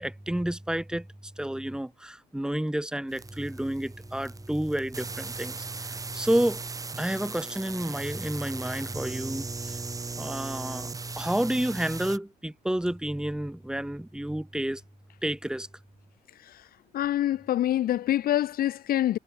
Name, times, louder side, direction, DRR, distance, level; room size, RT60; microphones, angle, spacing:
voice 1, 0.0-6.6 7.0-9.8 10.2-14.8 15.2-15.7, right 1 dB, 5° right, 3.5 m, -30 dB
sound 1, 3.1-12.2, right 4 dB, 20° right, 1.9 m, -38 dB
voice 2, 16.9-19.2, left 12 dB, 60° left, 1.2 m, -26 dB
cardioid pair, 110°, 17 cm